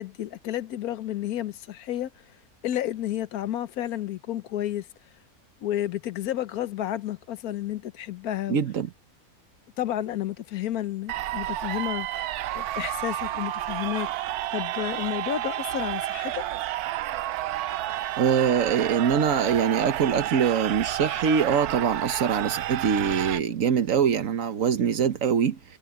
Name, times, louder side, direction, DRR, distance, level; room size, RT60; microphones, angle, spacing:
voice 1, 0.0-2.1 2.6-4.8 5.6-8.6 9.8-12.3 12.5-14.1 14.5-16.5, left 12 dB, 80° left, 1.2 m, -31 dB
voice 2, 8.5-8.9 18.2-25.8, right 7 dB, 65° right, 1.4 m, -23 dB
sound 1, 11.1-23.4, right 14 dB, 85° right, 1.1 m, -31 dB
omnidirectional pair, 1.6 m